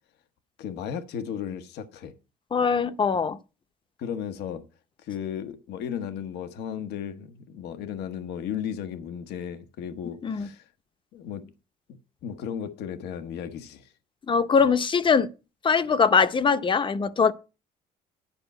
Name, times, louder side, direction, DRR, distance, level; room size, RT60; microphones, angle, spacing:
voice 1, 0.6-2.1 4.0-4.6 5.0-10.7 11.1-11.5 12.2-13.9 14.6-14.7, left 8 dB, 80° left, 1.1 m, -35 dB
voice 2, 2.5-3.4 10.2-10.5 14.3-15.3 15.6-17.3, left 5 dB, 30° left, 0.8 m, -22 dB
10.0 x 5.2 x 7.9 m
cardioid pair, 110°, 17 cm